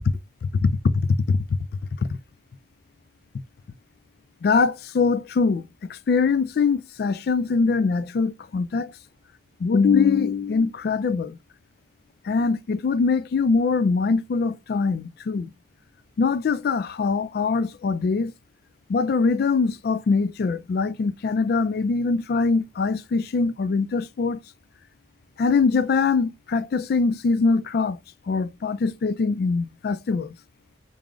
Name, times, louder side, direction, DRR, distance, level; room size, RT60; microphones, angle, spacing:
voice 1, 0.4-1.6 2.1-2.2 4.4-8.9 9.6-11.4 12.2-15.5 16.2-18.3 18.9-24.4 25.4-28.0 28.3-30.3, left 4 dB, 60° left, 0.3 m, -23 dB
4.7 x 2.0 x 3.7 m
head